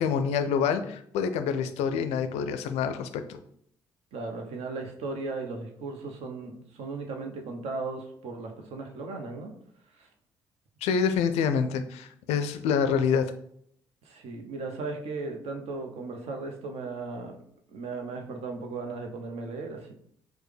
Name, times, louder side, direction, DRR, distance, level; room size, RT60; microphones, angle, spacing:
voice 1, 0.0-3.4 10.8-13.3, left 6 dB, 65° left, 9 dB, 0.4 m, -27 dB
voice 2, 4.1-9.5 10.0-10.1 14.0-17.4 17.7-20.0, right 3 dB, 60° right, 3 dB, 0.7 m, -36 dB
4.6 x 2.1 x 3.3 m, 0.67 s
figure-of-eight pair, 40°, 12 cm